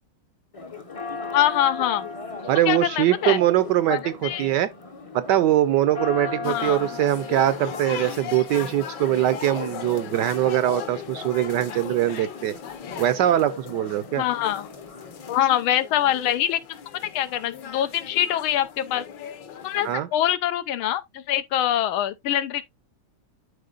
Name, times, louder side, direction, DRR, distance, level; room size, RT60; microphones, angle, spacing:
Church bell, 0.5-15.5, left 3 dB, 40° left, 0.5 m, -38 dB
voice 1, 1.3-2.1 2.7-3.4 3.9-4.5 6.4-6.9 14.2-14.7 15.3-16.6 17.1-19.0 19.6-22.6, left 11 dB, 85° left, 1.6 m, -24 dB
voice 2, 2.5-4.7 5.1-12.6 13.0-14.2 19.8-20.1, right 13 dB, 75° right, 1.0 m, -22 dB
sound 1, 6.4-20.0, left 8 dB, 65° left, 1.5 m, -38 dB
11.5 x 4.4 x 2.4 m
omnidirectional pair, 2.2 m